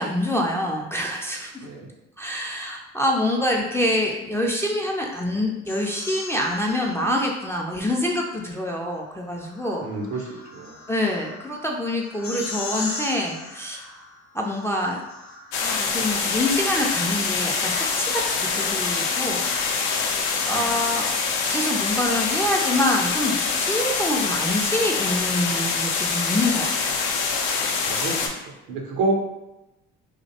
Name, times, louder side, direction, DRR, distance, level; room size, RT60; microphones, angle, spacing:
voice 1, 0.0-1.5 2.2-9.9 10.9-13.9 14.3-15.0 15.6-19.5 19.8-21.2 21.5-27.0, left 1 dB, 10° left, -1 dB, 0.3 m, -26 dB
sound 1, 5.7-7.6 9.1-16.3, left 3 dB, 40° left, 0.6 m, -38 dB
voice 2, 9.8-10.3 10.5-10.8 20.5-20.8 27.8-28.3 28.7-29.1, right 3 dB, 70° right, 1 dB, 0.6 m, -28 dB
sound 2, 15.5-28.3, left 5 dB, 80° left, 0.5 m, -25 dB
2.5 x 2.1 x 2.7 m, 0.95 s
hypercardioid pair, 55°, 35 cm